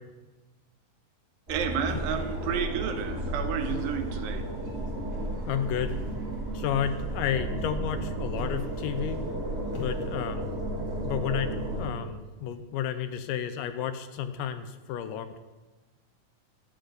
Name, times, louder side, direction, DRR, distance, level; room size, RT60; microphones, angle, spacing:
sound 1, 1.5-11.9, right 1 dB, 30° right, 1.2 m, -33 dB
voice 1, 1.5-4.5, right 8 dB, 80° right, 7 dB, 2.5 m, -31 dB
sound 2, 1.9-2.7 3.5-4.2 5.9-6.3 8.3-9.0 9.7-10.4, left 3 dB, 50° left, 1.2 m, -43 dB
voice 2, 5.5-6.0 6.5-9.2 9.8-15.4, left 9 dB, 80° left, 10 dB, 2.1 m, -32 dB
11.0 x 4.3 x 7.9 m, 1.2 s
omnidirectional pair, 4.0 m